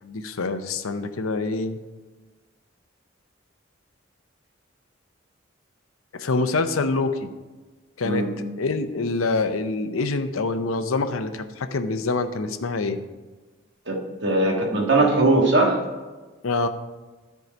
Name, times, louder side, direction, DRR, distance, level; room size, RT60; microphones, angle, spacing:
voice 1, 0.0-1.8 6.1-7.3 8.0-8.2 8.6-13.0 16.4-16.7, left 3 dB, 90° left, 9 dB, 0.6 m, -25 dB
voice 2, 13.9-15.8, right 2 dB, 55° right, 0 dB, 1.5 m, -20 dB
10.5 x 4.8 x 5.2 m, 1.3 s
head